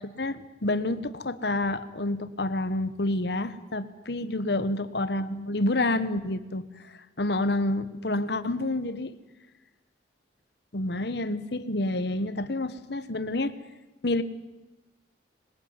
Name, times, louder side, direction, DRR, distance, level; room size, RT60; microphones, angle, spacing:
voice 1, 0.2-6.6 7.2-9.1 10.7-13.5 14.0-14.2, left 2 dB, 60° left, 12 dB, 1.3 m, -28 dB
26.0 x 21.0 x 9.8 m, 1.1 s
head